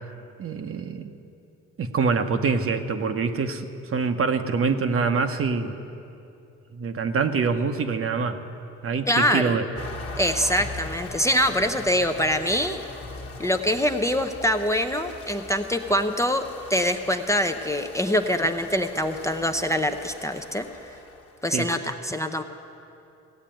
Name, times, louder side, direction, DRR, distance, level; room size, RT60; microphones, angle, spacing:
voice 1, 0.4-1.1 1.8-5.7 6.7-8.4 8.8-9.6 21.5-21.7, right 5 dB, 45° right, 7 dB, 0.9 m, -25 dB
voice 2, 9.1-9.5 10.2-12.8 13.4-16.4 16.7-20.7 21.4-22.4, equal, 10° left, 6 dB, 0.6 m, -24 dB
sound 1, 9.7-21.4, left 3 dB, 50° left, 1.3 m, -40 dB
16.5 x 8.2 x 8.9 m, 2.7 s
cardioid pair, 90°, 30 cm